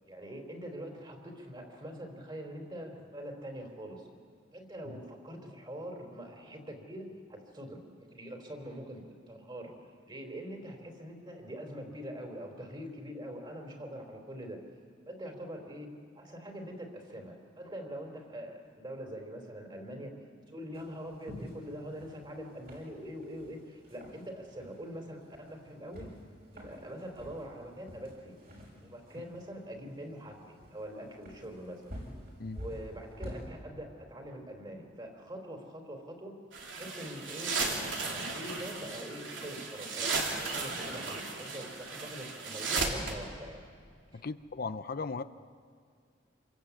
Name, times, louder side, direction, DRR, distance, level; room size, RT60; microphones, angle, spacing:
voice 1, 0.0-4.1 4.5-7.8 8.1-9.0 9.3-9.8 10.1-14.6 15.1-15.9 16.1-20.1 20.5-26.1 26.5-28.4 28.8-32.0 32.5-36.3 36.7-43.6 44.1-44.2, equal, 25° right, 3 dB, 3.9 m, -44 dB
sound 1, 20.7-33.5, equal, 55° right, 7.6 m, -49 dB
sound 2, 36.5-43.1, right 4 dB, 80° right, 3.3 m, -35 dB
voice 2, 44.1-45.2, left 4 dB, 55° left, 11 dB, 0.6 m, -37 dB
27.5 x 22.5 x 8.4 m, 2.2 s
head